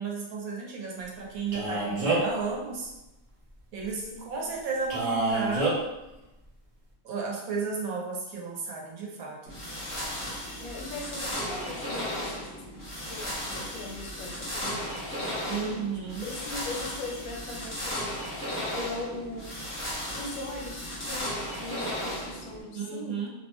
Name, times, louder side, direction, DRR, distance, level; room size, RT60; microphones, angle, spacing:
voice 1, 0.0-2.9 3.7-5.7 7.0-9.6 15.5-16.2 22.7-23.3, right 5 dB, 80° right, -1 dB, 1.1 m, -33 dB
Male speech man speaking, 1.5-2.4 4.9-5.7, right 3 dB, 60° right, 0.3 m, -27 dB
voice 2, 4.1-4.5 10.6-12.7 13.0-19.6 20.1-23.2, left 2 dB, 75° left, 0 dB, 1.0 m, -40 dB
sound 1, 9.4-22.6, equal, 15° left, 0.5 m, -35 dB
2.6 x 2.1 x 2.9 m, 0.96 s
omnidirectional pair, 1.5 m